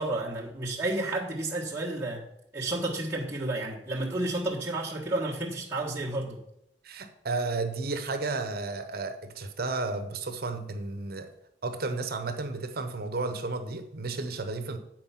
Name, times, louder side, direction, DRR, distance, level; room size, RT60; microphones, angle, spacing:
voice 1, 0.0-2.2 2.5-6.4, right 2 dB, 15° right, 1.3 m, -31 dB
voice 2, 6.8-11.3 11.6-14.8, right 3 dB, 60° right, 0.8 m, -33 dB
8.7 x 4.5 x 5.7 m
head